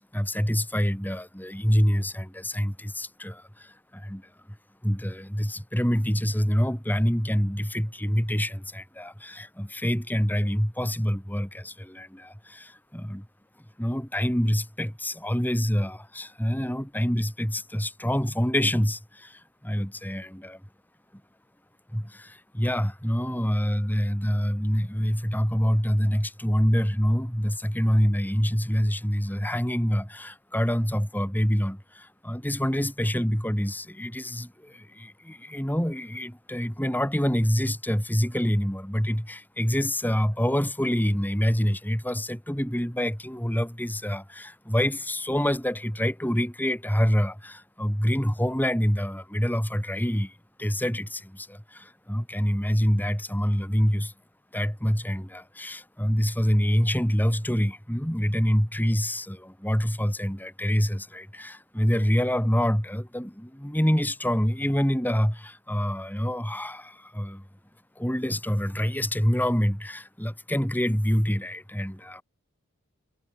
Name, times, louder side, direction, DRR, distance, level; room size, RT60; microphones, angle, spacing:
voice 1, 0.0-4.3 4.8-13.3 13.8-20.6 21.9-54.1 54.5-67.4 68.0-72.2, equal, 10° left, 5.5 m, -26 dB
head